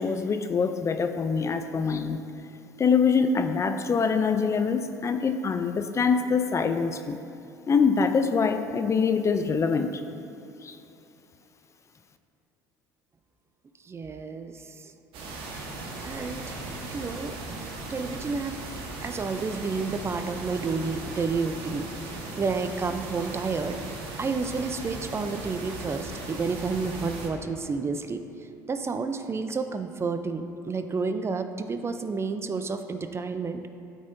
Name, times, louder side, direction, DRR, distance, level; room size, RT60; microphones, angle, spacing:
voice 1, 0.0-2.2 2.8-7.2 7.7-10.0 10.6-10.8, left 5 dB, 30° left, 8 dB, 0.5 m, -24 dB
voice 2, 13.8-14.9 16.0-16.4 16.8-17.4 17.9-18.6 19.0-28.2 28.7-33.7, right 4 dB, 25° right, 8 dB, 0.5 m, -30 dB
sound 1, 15.1-27.3, right 2 dB, 60° right, 1.5 m, -38 dB
12.5 x 5.4 x 2.7 m, 2.8 s
hypercardioid pair, 70°, 10 cm